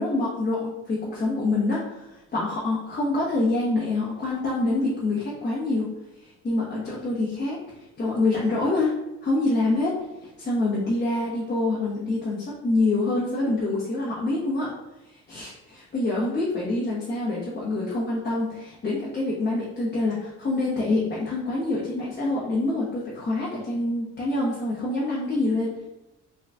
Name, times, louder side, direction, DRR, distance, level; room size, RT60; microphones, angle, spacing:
voice 1, 0.0-5.9 6.2-8.9 9.2-9.9 10.2-14.7 15.0-25.8, left 2 dB, 35° left, -6 dB, 1.0 m, -26 dB
3.9 x 3.8 x 2.2 m, 0.98 s
cardioid pair, 90°, 30 cm